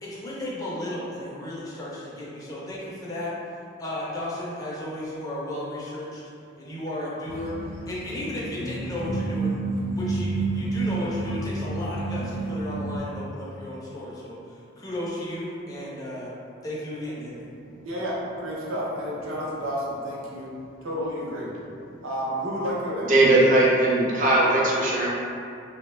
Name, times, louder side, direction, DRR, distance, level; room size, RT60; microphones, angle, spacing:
voice 1, 0.0-3.4 3.8-6.2 6.6-7.6 7.9-9.6 9.9-16.3 16.6-17.4, left 1 dB, 15° left, -7 dB, 0.4 m, -34 dB
sound 1, 7.3-13.0, right 2 dB, 85° left, 0.5 m, -29 dB
voice 2, 17.8-20.5 20.8-21.5 22.0-23.1, equal, 85° right, -6 dB, 0.7 m, -30 dB
voice 3, 23.0-25.1, right 2 dB, 40° right, -5 dB, 0.5 m, -19 dB
2.8 x 2.2 x 3.1 m, 2.5 s
head